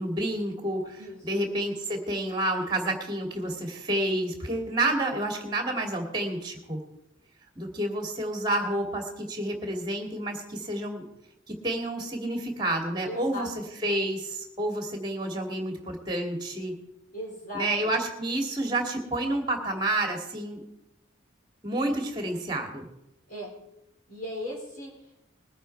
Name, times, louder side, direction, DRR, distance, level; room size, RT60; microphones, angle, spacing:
voice 1, 0.0-6.8 7.6-11.1 11.5-13.5 13.8-16.8 17.5-20.6 21.6-22.9, right 1 dB, 20° right, 3 dB, 2.3 m, -29 dB
voice 2, 1.0-1.4 13.0-13.5 17.1-17.9 23.3-23.5 24.1-25.3, left 1 dB, 45° left, -3 dB, 3.9 m, -38 dB
21.0 x 9.0 x 4.6 m, 0.86 s
head